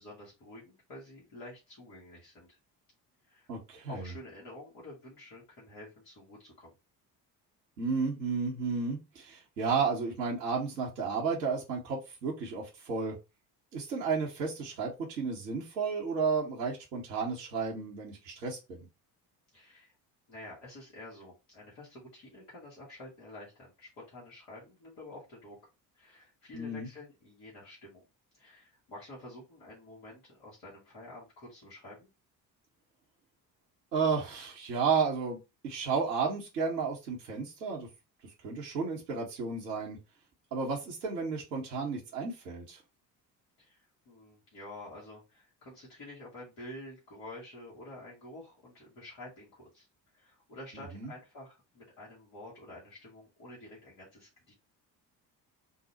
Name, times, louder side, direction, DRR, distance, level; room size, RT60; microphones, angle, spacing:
voice 1, 0.0-2.6 3.3-3.5 3.9-6.7 19.5-19.9 20.3-25.6 25.9-28.0 28.3-32.1 43.6-49.9 50.1-54.5, left 1 dB, 65° left, -6 dB, 1.7 m, -49 dB
voice 2, 3.5-4.1 7.8-13.2 13.7-18.8 26.5-26.9 33.9-35.4 35.6-37.9 38.4-40.0 40.5-42.8 50.8-51.1, right 5 dB, 80° right, -3 dB, 0.9 m, -32 dB
3.6 x 2.1 x 4.1 m, 0.25 s
figure-of-eight pair, 50°, 49 cm